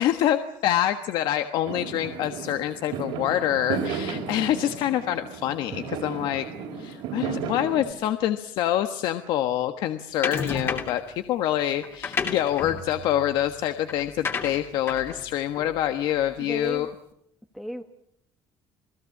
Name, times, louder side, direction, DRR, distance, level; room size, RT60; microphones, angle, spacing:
voice 1, 0.0-6.4 6.8-16.9, left 12 dB, 60° left, 8 dB, 1.4 m, -26 dB
Fireworks, 1.7-7.9, right 6 dB, 65° right, 3.8 m, -34 dB
sound 1, 10.2-11.1 11.8-16.5, left 5 dB, 25° left, 2.7 m, -33 dB
voice 2, 16.4-16.9 17.5-17.8, equal, ahead, 5 dB, 1.1 m, -34 dB
28.5 x 19.5 x 8.5 m, 0.73 s
cardioid pair, 175°, 9 cm